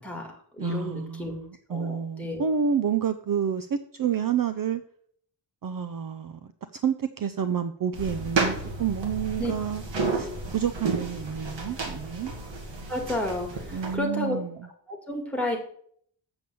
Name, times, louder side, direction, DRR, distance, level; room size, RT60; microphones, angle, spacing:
voice 1, 0.0-1.3 1.7-2.4 9.4-9.5 12.9-14.4 14.9-15.6, left 1 dB, 5° left, 2 dB, 2.0 m, -31 dB
voice 2, 0.6-4.8 5.6-6.4 6.7-9.8 10.1-12.3 13.7-14.7, right 7 dB, 50° right, 11 dB, 0.5 m, -29 dB
sound 1, 7.9-13.9, right 3 dB, 80° right, 2.2 m, -32 dB
7.1 x 7.0 x 7.6 m, 0.63 s
wide cardioid pair, 175°, 44 cm